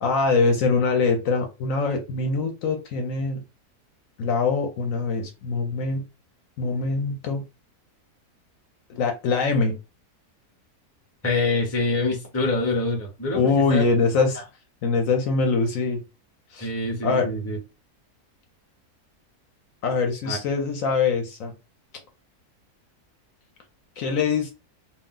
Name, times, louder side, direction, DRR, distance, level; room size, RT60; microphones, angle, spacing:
voice 1, 0.0-3.4 4.2-6.0 6.6-7.4 8.9-9.7 13.3-14.4 14.8-16.0 16.5-16.7 17.0-17.3 19.8-21.5 24.0-24.5, left 4 dB, 65° left, 4 dB, 0.9 m, -23 dB
voice 2, 11.2-13.9 16.6-17.6 20.2-20.4, left 2 dB, 15° left, 0 dB, 0.6 m, -25 dB
2.6 x 2.0 x 3.7 m, 0.28 s
omnidirectional pair, 1.6 m